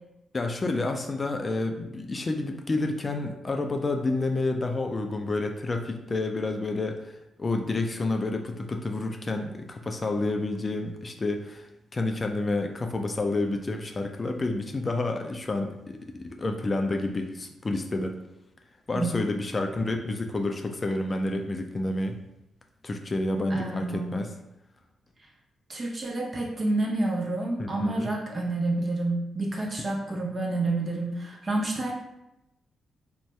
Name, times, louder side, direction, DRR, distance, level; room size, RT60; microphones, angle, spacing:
voice 1, 0.3-11.7 11.9-18.2 18.9-22.2 22.8-24.3 27.6-28.1, left 2 dB, 40° left, 4 dB, 0.4 m, -29 dB
voice 2, 23.5-24.2 25.7-31.9, right 2 dB, 40° right, -1 dB, 0.8 m, -29 dB
2.6 x 2.2 x 3.2 m, 0.89 s
hypercardioid pair, 45°, 0 cm